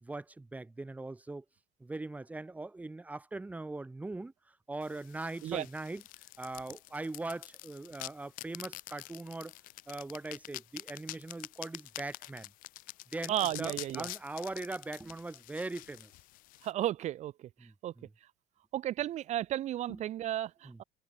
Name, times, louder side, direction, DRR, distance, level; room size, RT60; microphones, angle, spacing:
voice 1, 0.0-1.4 1.8-4.3 4.7-6.0 6.4-9.5 9.9-12.5 13.1-16.1 17.6-18.1 19.9-20.0 20.7-20.8, right 2 dB, 10° right, 1.7 m, -41 dB
sound 1, 4.8-16.7, left 19 dB, 80° left, 1.5 m, -47 dB
voice 2, 13.3-14.1 16.6-17.5 17.8-17.9 18.7-20.8, right 12 dB, 55° right, 1.4 m, -33 dB
cardioid pair, 140°, 14 cm